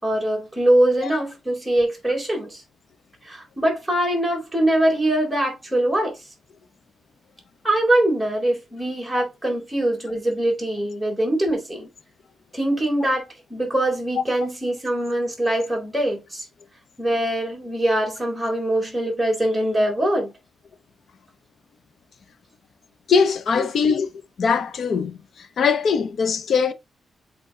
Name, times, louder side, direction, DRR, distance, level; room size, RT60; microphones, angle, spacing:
voice 1, 0.0-2.6 3.2-6.2 7.6-11.9 12.5-16.5 17.0-20.3 23.6-23.7, right 1 dB, 5° right, 4.3 m, -23 dB
voice 2, 23.1-24.1 24.4-25.2 25.6-26.7, left 5 dB, 65° left, 1.0 m, -21 dB
8.2 x 3.9 x 3.7 m
cardioid pair, 105°, 0 cm